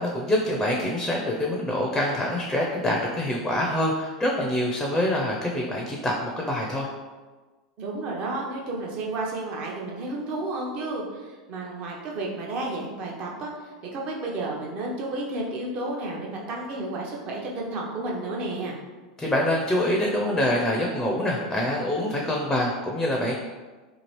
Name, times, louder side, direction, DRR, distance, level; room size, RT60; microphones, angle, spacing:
voice 1, 0.0-6.9 19.2-23.3, left 1 dB, 10° left, -1 dB, 0.5 m, -25 dB
voice 2, 7.8-18.7, right 2 dB, 45° right, -2 dB, 0.7 m, -32 dB
2.8 x 2.4 x 3.0 m, 1.3 s
hypercardioid pair, 90°, 3 cm